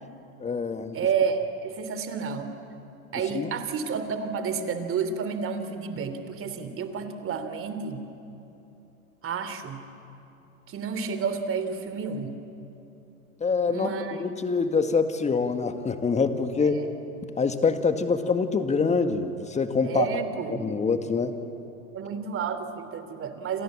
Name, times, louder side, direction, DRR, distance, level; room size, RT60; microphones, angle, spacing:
voice 1, 0.4-1.0 3.3-3.5 13.4-13.9 14.2-16.8 17.4-20.1 20.6-21.4, left 4 dB, 15° left, 8 dB, 1.9 m, -25 dB
voice 2, 0.9-2.5 3.1-8.0 9.2-9.8 10.7-12.4 13.7-14.2 16.6-16.9 19.8-20.6 21.9-23.6, right 6 dB, 30° right, 9 dB, 3.0 m, -30 dB
29.5 x 26.5 x 7.6 m, 2.9 s
hypercardioid pair, 100°, 43 cm